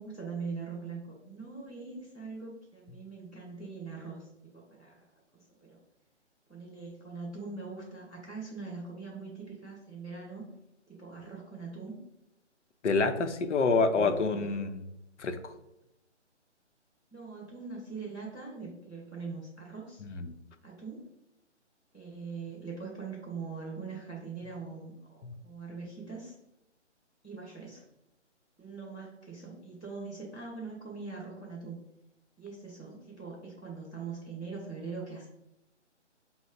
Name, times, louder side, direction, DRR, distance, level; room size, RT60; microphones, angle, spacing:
voice 1, 0.0-5.1 5.3-5.8 6.5-10.5 10.9-12.0 13.2-14.3 17.1-20.0 20.6-21.0 21.9-26.3 27.2-27.8 28.6-31.8 32.4-35.3, right 4 dB, 5° left, -14 dB, 0.5 m, -42 dB
voice 2, 12.8-14.8 15.2-15.5 20.0-20.3 25.2-25.3, left 4 dB, 75° left, 8 dB, 0.6 m, -28 dB
5.6 x 2.0 x 3.8 m, 0.88 s
hypercardioid pair, 160°, 36 cm